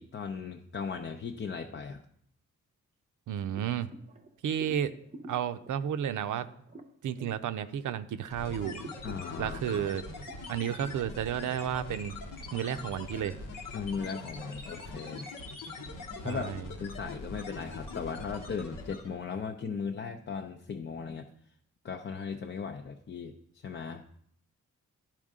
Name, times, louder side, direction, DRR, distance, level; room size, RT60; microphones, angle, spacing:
voice 1, 0.0-2.0 9.0-9.9 13.7-15.3 15.9-21.3 21.8-24.0, left 5 dB, 40° left, 3 dB, 0.5 m, -37 dB
voice 2, 3.3-3.9 4.4-4.9 5.3-6.5 7.0-8.8 9.4-10.0 10.5-12.2 12.5-13.4 16.2-16.7, right 9 dB, 75° right, 12 dB, 0.5 m, -32 dB
sound 1, 3.8-8.2 8.5-10.3, right 2 dB, 25° right, 0.7 m, -50 dB
sound 2, 8.3-19.2, left 3 dB, 85° left, 1.1 m, -42 dB
10.5 x 4.4 x 3.7 m, 0.68 s
cardioid pair, 70°, 31 cm